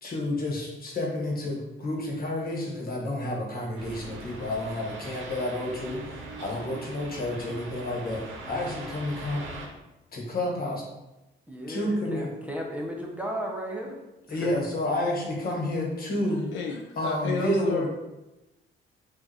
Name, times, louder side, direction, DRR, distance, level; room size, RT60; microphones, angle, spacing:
voice 1, 0.0-9.5 10.1-10.8 11.7-12.3 14.3-16.5 17.0-17.9, left 1 dB, 50° left, -2 dB, 1.2 m, -30 dB
sound 1, 3.8-9.7, right 2 dB, 75° right, 0.8 m, -41 dB
voice 2, 11.5-14.0 14.3-14.5, equal, 5° right, -1 dB, 0.7 m, -34 dB
voice 3, 16.5-17.9, left 4 dB, 75° left, 2 dB, 0.5 m, -31 dB
5.1 x 2.5 x 2.8 m, 1.0 s
cardioid pair, 90°, 20 cm